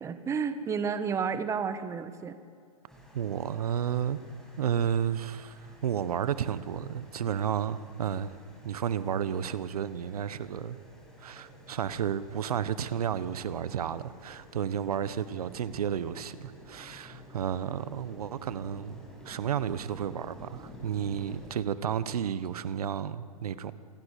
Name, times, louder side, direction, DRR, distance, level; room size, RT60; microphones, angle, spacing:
voice 1, 0.0-2.4, right 6 dB, 15° right, 11 dB, 1.4 m, -31 dB
boil water, 2.9-21.5, equal, 5° left, 6.7 m, -51 dB
voice 2, 3.1-4.2 4.6-8.4 8.6-10.8 11.2-23.7, right 9 dB, 75° right, 15 dB, 1.3 m, -32 dB
27.5 x 21.5 x 8.5 m, 2.3 s
hypercardioid pair, 135°, 19 cm